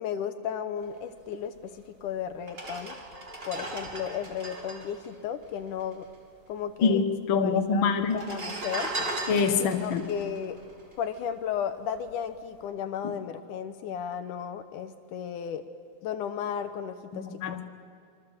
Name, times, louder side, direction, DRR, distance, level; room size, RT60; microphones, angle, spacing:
voice 1, 0.0-3.0 3.5-6.1 6.5-7.0 7.4-8.9 9.8-10.6 11.0-15.6 16.0-17.3, left 8 dB, 75° left, 9 dB, 2.3 m, -34 dB
sound 1, 1.8-1.9 2.4-6.1 6.4-6.5 6.6-7.3 8.0-11.5 11.9-12.2, right 2 dB, 20° right, 2.3 m, -37 dB
voice 2, 6.8-8.2 9.3-10.0 17.1-17.6, left 5 dB, 55° left, 6 dB, 1.6 m, -25 dB
25.5 x 24.5 x 7.5 m, 2.4 s
omnidirectional pair, 3.9 m